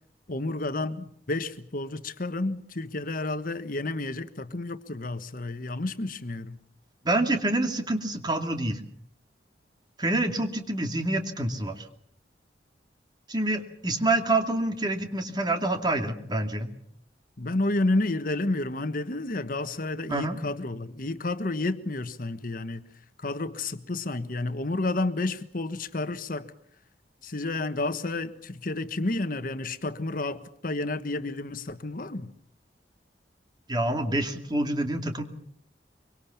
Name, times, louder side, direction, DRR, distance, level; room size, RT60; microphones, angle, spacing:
voice 1, 0.3-6.6 17.4-22.9 23.2-26.5 27.2-32.3, left 2 dB, 50° left, 1.3 m, -30 dB
voice 2, 7.0-8.8 10.0-11.9 13.3-16.7 20.1-20.4 33.7-35.2, right 2 dB, 25° right, 2.6 m, -27 dB
24.5 x 24.0 x 7.1 m
head